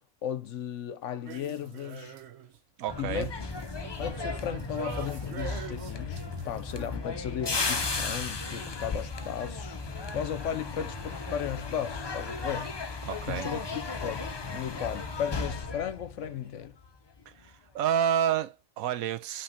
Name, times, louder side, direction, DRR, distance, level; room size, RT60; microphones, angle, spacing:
voice 1, 0.2-2.2 3.0-3.3 4.0-9.8 10.1-12.8 13.3-16.7, left 9 dB, 65° left, 1.0 m, -35 dB
sound 1, 1.2-2.6 2.9-6.9, right 9 dB, 60° right, 0.9 m, -44 dB
voice 2, 2.8-3.3 13.0-13.5 17.3-19.4, right 9 dB, 85° right, 1.1 m, -29 dB
sound 2, 2.9-16.9 17.2-17.5, left 3 dB, 35° left, 0.4 m, -35 dB
5.7 x 3.4 x 5.2 m
omnidirectional pair, 1.4 m